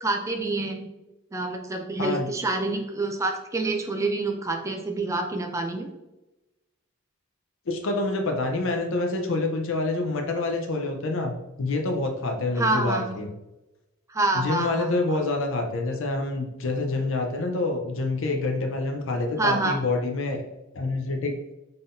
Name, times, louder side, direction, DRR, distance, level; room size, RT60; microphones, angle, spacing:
voice 1, 0.0-0.9 1.3-5.9 12.6-13.2 14.1-15.2 19.4-19.8, right 2 dB, 15° right, 4 dB, 0.3 m, -27 dB
voice 2, 7.7-13.3 14.3-20.4 20.7-21.4, left 2 dB, 65° left, 3 dB, 0.6 m, -27 dB
3.8 x 3.7 x 2.5 m, 0.99 s
head